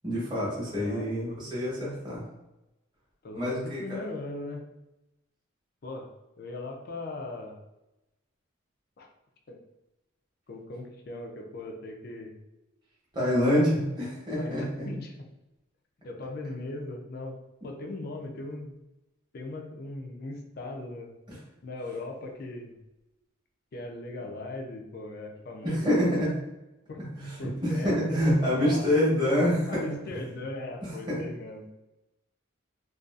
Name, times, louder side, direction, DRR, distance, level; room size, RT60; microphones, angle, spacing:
voice 1, 0.0-2.2 3.3-4.0 13.1-14.9 25.6-26.4 27.2-29.9 30.8-31.1, equal, 20° right, -7 dB, 0.9 m, -26 dB
voice 2, 0.8-1.1 3.2-4.7 5.8-6.1 6.4-7.6 9.0-9.1 9.5-9.6 10.5-12.4 14.4-15.3 16.0-17.4 17.6-18.8 19.3-21.2 21.6-22.7 23.7-26.1 26.9-27.0 27.4-29.0 29.7-31.7, left 2 dB, 45° left, 2 dB, 0.4 m, -39 dB
2.5 x 2.3 x 2.3 m, 0.96 s
head